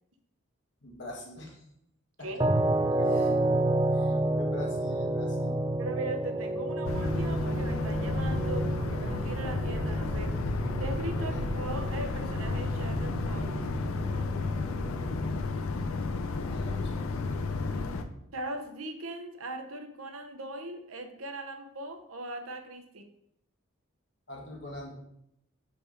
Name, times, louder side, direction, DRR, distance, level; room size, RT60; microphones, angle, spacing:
voice 1, 0.8-1.6 3.1-3.4 3.9-5.6 11.1-11.4 16.4-17.2 24.3-24.9, left 2 dB, 55° left, -1 dB, 1.7 m, -43 dB
sound 1, 2.4-15.4, right 1 dB, 20° right, 0.3 m, -30 dB
voice 2, 3.0-3.5 5.8-10.3 10.8-13.6 18.3-23.0, right 2 dB, 85° right, 5 dB, 0.9 m, -39 dB
sound 2, 6.8-18.0, left 3 dB, 90° left, 0.6 m, -32 dB
5.1 x 4.5 x 5.0 m, 0.77 s
head